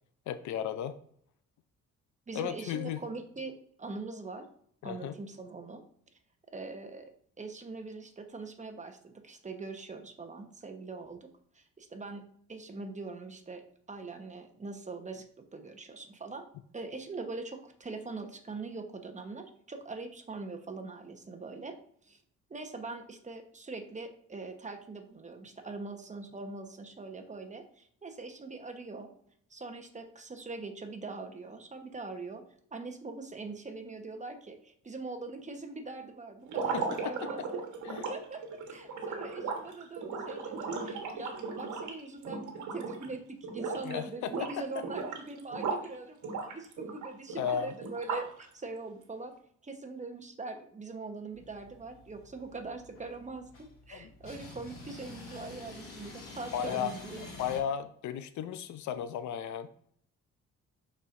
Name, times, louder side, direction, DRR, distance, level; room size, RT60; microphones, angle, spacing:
voice 1, 0.3-1.0 2.3-3.0 4.8-5.2 37.0-37.3 37.9-38.0 43.8-44.5 47.4-47.7 53.9-54.1 56.5-59.7, left 9 dB, 70° left, 12 dB, 0.5 m, -35 dB
voice 2, 2.3-4.5 4.8-5.8 6.5-7.1 7.4-11.3 11.5-12.2 12.5-13.6 13.9-21.7 22.0-22.2 22.5-29.1 29.5-32.4 32.7-37.6 38.1-49.3 49.6-57.2, right 3 dB, 25° right, 5 dB, 1.0 m, -42 dB
sound 1, 36.5-43.1 43.4-43.9 44.2-45.9 46.2-48.4, right 4 dB, 75° right, 1.3 m, -36 dB
sound 2, 51.3-57.6, left 2 dB, 45° left, 2.0 m, -48 dB
11.0 x 4.4 x 2.6 m, 0.63 s
cardioid pair, 90°, 30 cm